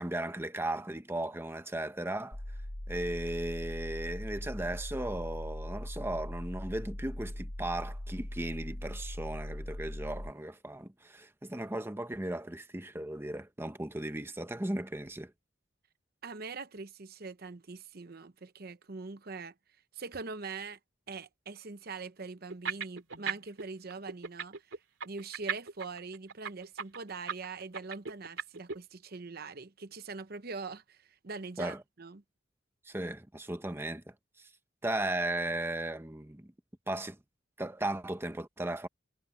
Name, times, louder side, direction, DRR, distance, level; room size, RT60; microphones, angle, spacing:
voice 1, 0.0-2.4 2.9-15.3 31.6-31.8 32.9-34.5 34.8-36.5 36.9-37.2 37.6-38.9, right 1 dB, 10° right, 0.9 m, -36 dB
sound 1, 2.3-10.3, left 1 dB, 70° left, 2.3 m, -40 dB
voice 2, 16.2-19.5 19.9-20.8 21.1-24.6 25.0-32.2, right 4 dB, 55° right, 0.9 m, -43 dB
sound 2, 22.5-23.6 23.9-28.8, right 6 dB, 90° right, 2.5 m, -36 dB
head